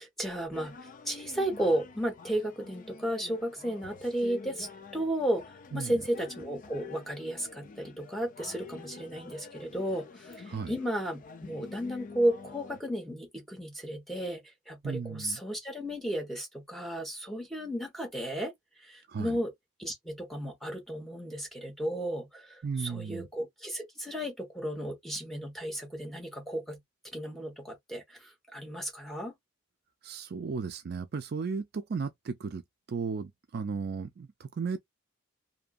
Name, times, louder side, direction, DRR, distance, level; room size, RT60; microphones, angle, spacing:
voice 1, 0.0-18.5 18.8-19.5 19.8-26.8 27.1-29.3, right 1 dB, ahead, 0.9 m, -34 dB
sound 1, 0.5-12.8, left 4 dB, 40° left, 0.4 m, -48 dB
voice 2, 14.8-15.4 19.1-19.4 22.6-23.3 30.0-32.6 32.9-34.8, right 5 dB, 50° right, 0.4 m, -35 dB
2.7 x 2.5 x 2.3 m
head